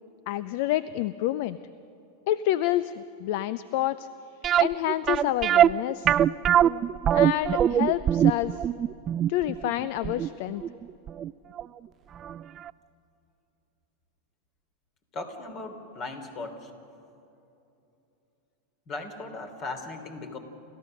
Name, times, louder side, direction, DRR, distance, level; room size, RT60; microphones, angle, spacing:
voice 1, 0.3-1.6 2.3-4.1 4.6-6.2 7.1-8.6 9.3-10.6, left 14 dB, 60° left, 16 dB, 0.4 m, -28 dB
sound 1, 4.4-11.3 11.6-11.7 12.2-12.4 12.7-12.8, right 10 dB, 35° right, 0.4 m, -22 dB
voice 2, 15.1-16.7 18.9-20.4, left 3 dB, 40° left, 6 dB, 3.1 m, -37 dB
30.0 x 14.0 x 6.4 m, 2.8 s
hypercardioid pair, 95°, 0 cm